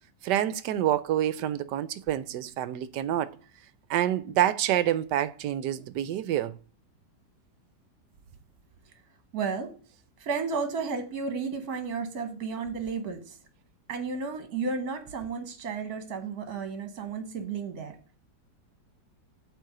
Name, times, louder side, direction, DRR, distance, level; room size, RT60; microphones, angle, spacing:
voice 1, 0.2-3.3 3.9-6.5, right 11 dB, 75° right, 1.1 m, -27 dB
voice 2, 9.3-9.8 10.2-13.4 13.9-18.0, right 5 dB, 60° right, 1.5 m, -33 dB
8.5 x 3.2 x 6.4 m
omnidirectional pair, 2.0 m